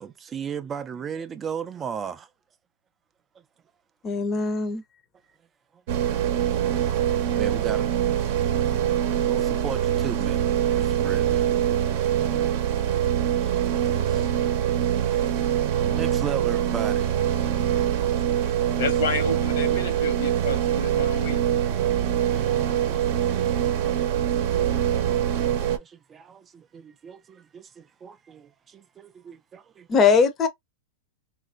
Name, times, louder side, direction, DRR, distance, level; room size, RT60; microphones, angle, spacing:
voice 1, 0.0-2.3 6.7-7.9 9.3-10.4 10.7-11.4 13.4-14.3 15.1-15.4 15.8-17.1 18.0-18.2 21.7-23.6 24.3-30.0, right 7 dB, 25° right, 0.3 m, -37 dB
voice 2, 4.0-4.8 29.9-30.5, left 5 dB, 30° left, 0.6 m, -20 dB
sound 1, 5.9-25.8, right 10 dB, 60° right, 0.7 m, -24 dB
voice 3, 18.4-21.4, left 3 dB, 75° left, 1.0 m, -30 dB
2.9 x 2.5 x 2.4 m
hypercardioid pair, 125°, 0 cm